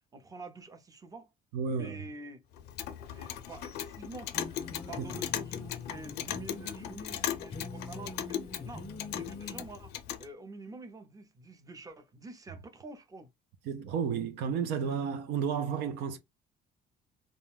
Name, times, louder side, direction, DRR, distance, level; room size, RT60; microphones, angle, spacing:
voice 1, 0.1-1.3 1.7-2.4 2.8-4.5 4.9-8.4 8.6-8.9 9.1-13.3, right 2 dB, 20° right, 0.6 m, -47 dB
voice 2, 1.5-2.0 13.7-16.2, right 6 dB, 85° right, 0.5 m, -32 dB
Clock, 2.5-10.3, left 11 dB, 80° left, 0.5 m, -38 dB
sound 1, 4.3-9.6, left 3 dB, 30° left, 0.5 m, -44 dB
2.4 x 2.2 x 3.3 m
cardioid pair, 110°, 17 cm